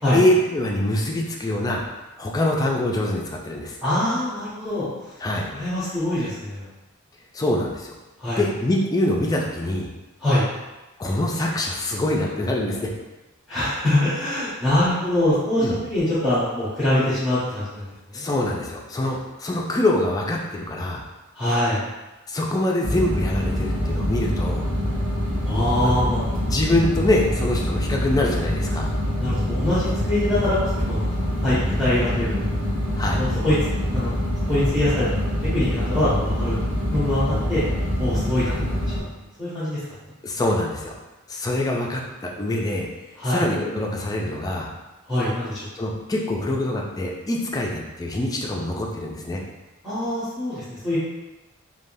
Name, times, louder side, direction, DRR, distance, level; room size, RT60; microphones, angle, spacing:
voice 1, 0.1-1.8 2.2-3.8 5.2-5.5 7.3-7.9 8.4-9.9 11.0-12.9 15.6-15.8 18.1-21.0 22.3-24.6 25.8-26.0 26.4-28.9 33.0-33.2 40.2-41.0 41.3-42.0 42.4-42.9 43.2-44.7 45.8-49.4, left 1 dB, 15° left, -1 dB, 0.3 m, -24 dB
voice 2, 3.8-4.9 5.5-6.7 8.2-8.4 10.2-10.4 13.5-18.3 21.3-21.8 25.4-26.2 29.2-32.6 33.2-33.6 33.9-34.1 34.5-36.6 36.9-37.6 38.0-39.0 39.4-39.8 43.2-43.4 45.1-45.7 49.8-51.0, left 1 dB, ahead, -12 dB, 0.8 m, -24 dB
sound 1, 22.8-39.0, left 1 dB, 20° right, 1.3 m, -25 dB
3.3 x 2.2 x 2.6 m, 1.1 s
head